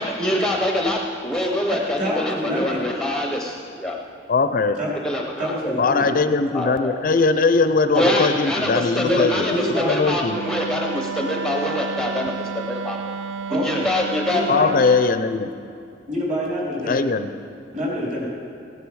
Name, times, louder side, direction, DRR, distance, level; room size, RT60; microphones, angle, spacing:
voice 1, 0.0-4.0 5.0-5.7 6.5-6.9 7.9-13.0 13.5-14.4, left 1 dB, 5° left, 0 dB, 0.7 m, -24 dB
voice 2, 1.7-2.9 4.8-4.9 5.4-6.1 9.0-10.0 13.5-13.9 14.3-14.7 16.1-17.0 17.7-18.3, equal, 40° right, -5 dB, 3.7 m, -26 dB
voice 3, 4.3-4.8 5.8-10.4 14.5-15.5 16.9-17.3, left 4 dB, 45° left, 10 dB, 0.4 m, -20 dB
Wind instrument woodwind instrument, 10.3-15.2, right 6 dB, 70° right, 0.4 m, -31 dB
16.0 x 10.0 x 4.7 m, 2.5 s
head